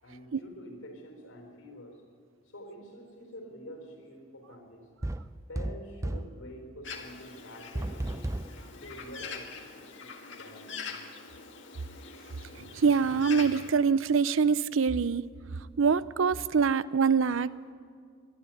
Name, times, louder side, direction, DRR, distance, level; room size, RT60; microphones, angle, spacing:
voice 1, 0.0-2.1 2.4-4.9 5.5-8.4 8.7-9.6 10.0-10.9, equal, 90° left, 4.3 m, -47 dB
sound 1, 5.0-6.4 7.7-8.6, right 1 dB, 15° right, 0.4 m, -33 dB
Bird, 6.8-13.7, left 5 dB, 65° left, 1.8 m, -44 dB
voice 2, 12.6-15.2 15.8-17.7, right 5 dB, 80° right, 0.5 m, -25 dB
23.0 x 12.5 x 9.1 m
head